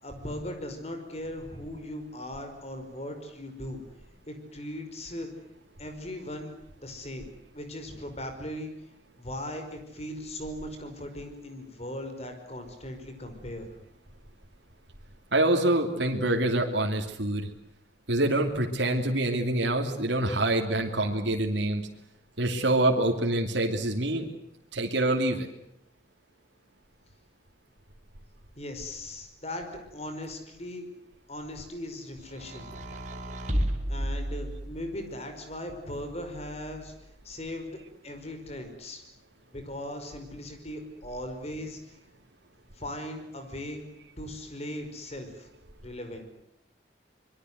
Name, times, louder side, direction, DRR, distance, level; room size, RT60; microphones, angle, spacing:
voice 1, 0.0-3.8 4.3-5.3 5.8-6.5 6.8-8.7 9.2-13.7 28.6-30.9 31.3-33.0 33.9-36.9 37.2-39.0 39.5-41.9 42.8-43.8 44.2-45.5 45.8-46.2, left 1 dB, 35° left, 6 dB, 5.3 m, -38 dB
voice 2, 15.3-17.5 18.1-21.8 22.4-24.3 24.7-25.5, right 1 dB, 90° right, 2 dB, 2.9 m, -26 dB
sound 1, 32.3-35.0 35.9-36.9, equal, 45° right, 3.5 m, -33 dB
25.5 x 22.5 x 8.1 m, 0.80 s
head